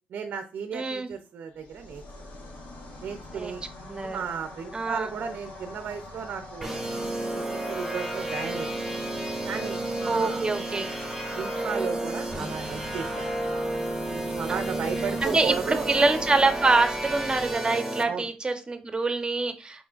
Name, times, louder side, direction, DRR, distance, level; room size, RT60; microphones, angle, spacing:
voice 1, 0.1-2.0 3.0-3.6 4.0-6.9 7.3-8.9 9.4-10.6 11.3-13.3 14.1-15.9 18.1-18.3, right 6 dB, 75° right, 7 dB, 0.5 m, -34 dB
voice 2, 0.7-1.1 3.3-3.5 3.9-4.2 4.7-5.1 10.1-10.9 11.6-12.0 14.5-14.9 15.2-19.9, right 3 dB, 25° right, 7 dB, 0.9 m, -26 dB
sound 1, 1.5-17.5, left 2 dB, 80° left, 1.4 m, -44 dB
sound 2, 6.6-18.0, right 1 dB, 5° right, 1.9 m, -32 dB
5.0 x 3.6 x 2.4 m, 0.33 s
cardioid pair, 65°, 3 cm